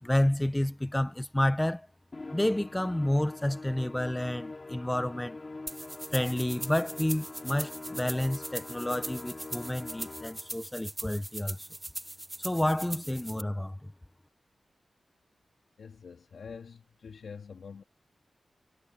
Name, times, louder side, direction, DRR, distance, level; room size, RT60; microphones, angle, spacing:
voice 1, 0.0-1.9 2.3-5.4 6.1-11.7 12.4-13.9, left 1 dB, 10° left, 0.9 m, -30 dB
Musical instrument, 2.1-10.6, left 3 dB, 30° left, 3.8 m, -44 dB
sound 1, 5.7-13.4, right 1 dB, 15° right, 0.5 m, -41 dB
voice 2, 15.8-17.8, left 6 dB, 85° left, 3.3 m, -46 dB
wide cardioid pair, 135°, 0 cm